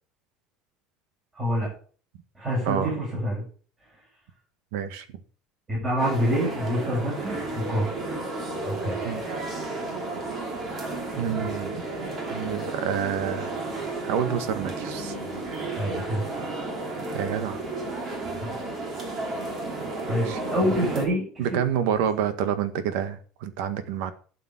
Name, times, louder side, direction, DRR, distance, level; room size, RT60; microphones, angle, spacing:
voice 1, 1.3-1.7 2.4-3.4 5.7-8.0 8.6-9.1 15.8-16.3 18.4-18.6 20.1-21.7, equal, 15° right, -6 dB, 7.0 m, -27 dB
voice 2, 4.7-5.0 9.0-9.2 11.2-11.8 12.3-13.5 14.0-15.1 17.1-17.6 20.1-20.4 21.4-24.1, right 8 dB, 75° right, 10 dB, 1.5 m, -28 dB
sound 1, 6.0-21.1, right 2 dB, 30° right, 3.1 m, -32 dB
12.0 x 7.2 x 5.7 m, 0.42 s
cardioid pair, 165°, 0 cm